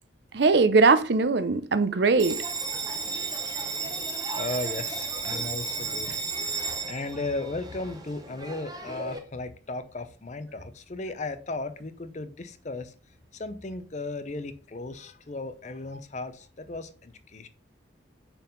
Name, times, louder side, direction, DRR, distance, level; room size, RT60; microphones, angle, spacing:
voice 1, 0.3-2.4, right 4 dB, 60° right, 0.5 m, -20 dB
Bell, 2.2-9.2, right 4 dB, 20° right, 0.7 m, -33 dB
voice 2, 4.3-6.2 6.9-12.9 13.3-17.5, left 2 dB, 40° left, 0.6 m, -36 dB
5.4 x 4.5 x 3.8 m
head